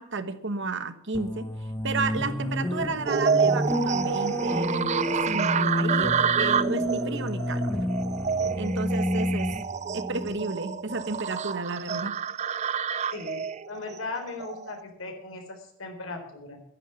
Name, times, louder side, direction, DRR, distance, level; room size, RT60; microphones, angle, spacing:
voice 1, 0.0-1.5 1.8-7.8 8.6-9.5 9.9-12.2, right 3 dB, 60° right, 10 dB, 1.3 m, -32 dB
sound 1, 1.1-11.0, left 1 dB, 15° left, 1.0 m, -30 dB
sound 2, 3.1-14.8, right 6 dB, 35° right, 0.4 m, -28 dB
voice 2, 13.1-16.6, left 3 dB, 70° left, 3 dB, 4.0 m, -38 dB
11.5 x 10.5 x 7.2 m, 0.69 s
head